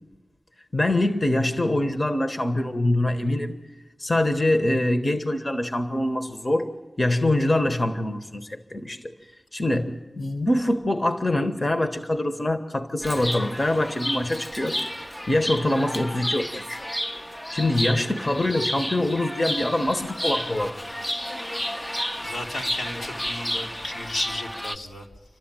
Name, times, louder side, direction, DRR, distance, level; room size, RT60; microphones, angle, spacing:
voice 1, 0.7-3.6 4.0-6.7 7.0-9.1 9.5-14.8 15.3-16.8 17.5-20.8, left 1 dB, 35° left, 1.3 m, -24 dB
Chirp tweet, 13.0-24.8, equal, 15° left, 0.8 m, -31 dB
voice 2, 17.6-17.9 22.2-25.1, left 1 dB, 85° left, 2.7 m, -34 dB
29.0 x 12.5 x 9.0 m
cardioid pair, 45°, 0 cm